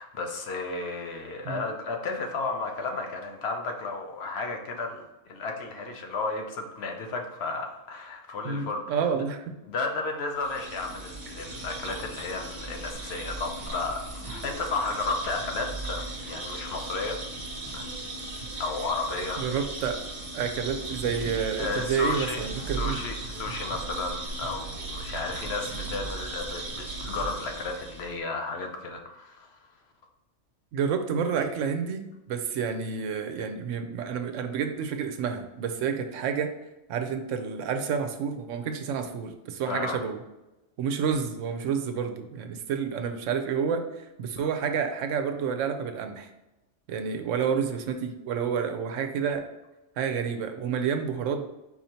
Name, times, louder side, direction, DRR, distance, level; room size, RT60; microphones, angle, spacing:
voice 1, 0.0-9.2 9.7-17.2 17.7-17.9 18.6-19.6 21.6-29.6 39.7-40.0 44.4-44.5, left 3 dB, 60° left, 3 dB, 0.8 m, -33 dB
voice 2, 8.4-9.4 19.4-20.0 20.3-23.0 30.7-32.0 32.3-36.5 36.9-40.2 40.8-46.3 46.9-49.4 50.0-51.5, right 6 dB, 80° right, 7 dB, 0.9 m, -29 dB
sound 1, 10.4-28.2, right 2 dB, 40° right, 0.9 m, -37 dB
4.5 x 2.7 x 4.3 m, 0.96 s
omnidirectional pair, 1.3 m